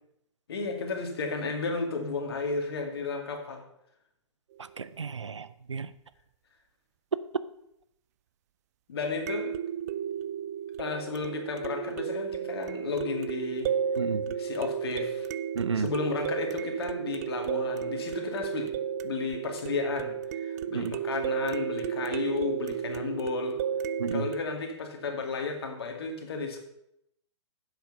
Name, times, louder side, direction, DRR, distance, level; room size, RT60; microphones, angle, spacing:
voice 1, 0.5-3.6 8.9-9.5 10.8-13.7 14.4-15.3 15.7-18.7 19.0-20.1 20.4-23.6 24.1-26.6, left 4 dB, 55° left, 3 dB, 2.4 m, -33 dB
sound 1, 4.6-4.7 9.3-24.4, right 8 dB, 30° right, 0.4 m, -33 dB
voice 2, 4.8-5.9 14.0-14.3 15.5-15.9 20.7-21.0 24.0-24.3, right 5 dB, 70° right, 15 dB, 0.7 m, -32 dB
10.0 x 7.8 x 5.5 m, 0.79 s
figure-of-eight pair, 120°, 16 cm